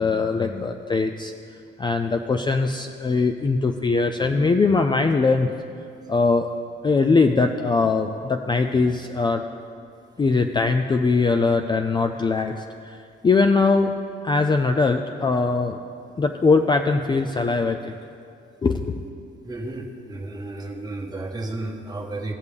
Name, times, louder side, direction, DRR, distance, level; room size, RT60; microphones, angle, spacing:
voice 1, 0.0-1.3 1.8-5.5 6.1-6.5 6.8-9.4 10.2-13.9 14.2-15.8 16.2-18.0 18.6-19.0, left 4 dB, 25° left, 6 dB, 0.4 m, -21 dB
voice 2, 19.4-22.3, right 2 dB, 20° right, 0 dB, 1.3 m, -32 dB
16.0 x 6.6 x 3.5 m, 2.4 s
cardioid pair, 90°, 20 cm